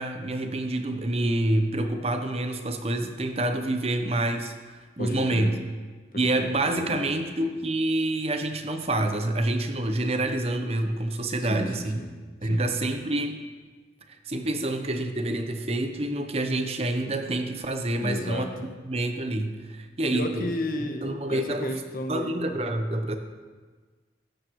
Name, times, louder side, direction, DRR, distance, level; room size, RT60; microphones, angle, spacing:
voice 1, 0.0-5.5 6.1-12.0 12.4-13.4 14.3-18.5 18.8-20.5 21.0-21.8 22.1-23.2, right 1 dB, 35° right, 6 dB, 1.1 m, -27 dB
voice 2, 5.0-5.5 6.1-7.1 11.4-12.1 12.4-12.6 18.0-18.7 20.1-22.4, left 1 dB, 50° left, 5 dB, 1.5 m, -33 dB
16.0 x 13.0 x 4.8 m, 1.4 s
head